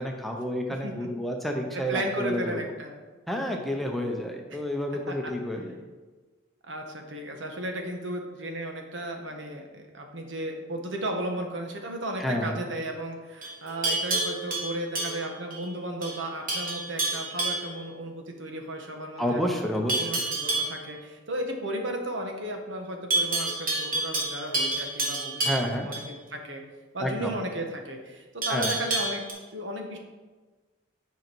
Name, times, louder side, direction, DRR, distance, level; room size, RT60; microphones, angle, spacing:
voice 1, 0.0-2.6 3.3-5.7 12.2-12.6 19.2-20.2 25.4-25.9 27.0-27.3 28.5-28.7, equal, ahead, 1 dB, 0.8 m, -30 dB
voice 2, 1.7-3.0 4.5-4.6 5.1-5.3 6.7-26.0 26.3-26.6 26.9-29.2 29.5-30.0, right 1 dB, 70° right, 3 dB, 1.2 m, -34 dB
Livestock farm animals working animals, 13.4-15.6 16.0-16.2 16.5-17.7 19.9-20.8 23.1-26.1 28.4-29.3, right 2 dB, 45° right, 1.8 m, -29 dB
9.3 x 5.3 x 4.6 m, 1.3 s
head